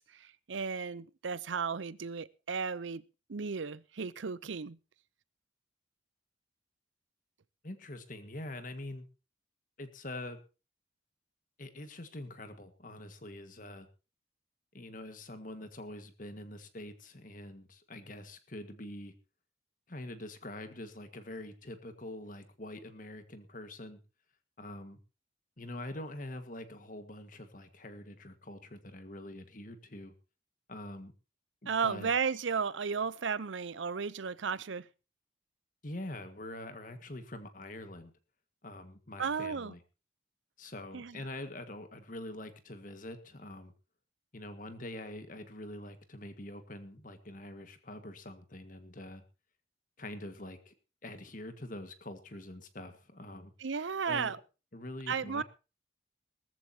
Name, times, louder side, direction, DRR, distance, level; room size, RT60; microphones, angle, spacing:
voice 1, 0.0-3.0 3.3-4.8 31.7-34.9 39.2-39.7 40.9-41.2 53.6-54.4 55.1-55.4, right 5 dB, 80° right, 0.6 m, -34 dB
voice 2, 7.6-9.1 9.8-10.4 11.6-13.9 14.7-19.1 19.9-24.0 24.6-25.0 25.6-30.1 30.7-31.1 31.6-32.1 35.8-38.1 38.6-39.8 40.6-43.7 44.3-49.2 50.0-50.7 51.0-53.5 54.0-54.3 54.7-55.4, left 1 dB, 45° left, 1.7 m, -44 dB
18.5 x 14.5 x 2.8 m
head